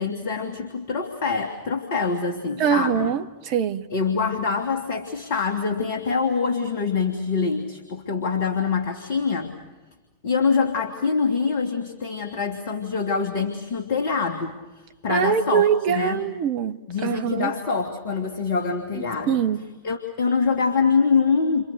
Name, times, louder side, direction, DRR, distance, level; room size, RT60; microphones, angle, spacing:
voice 1, 0.0-3.2 3.9-9.5 10.2-14.6 15.0-16.3 16.9-19.4 19.8-21.6, left 5 dB, 50° left, 3 dB, 2.9 m, -24 dB
voice 2, 2.6-3.9 15.1-17.5 19.3-19.6, right 8 dB, 45° right, 11 dB, 1.3 m, -23 dB
29.5 x 28.0 x 6.6 m, 1.2 s
figure-of-eight pair, 90°, 0 cm